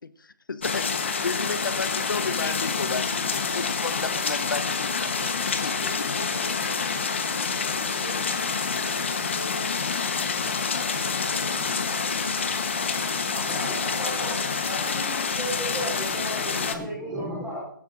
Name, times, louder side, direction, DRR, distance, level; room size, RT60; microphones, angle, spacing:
voice 1, 0.0-5.1 5.6-6.1, left 4 dB, 70° left, 0.9 m, -33 dB
sound 1, 0.6-16.8, left 5 dB, 35° left, 1.0 m, -27 dB
voice 2, 5.8-11.8 13.4-14.7, right 2 dB, 40° right, 2.8 m, -45 dB
voice 3, 13.2-17.7, equal, ahead, 0.6 m, -34 dB
23.5 x 11.0 x 2.5 m
hypercardioid pair, 175°, 11 cm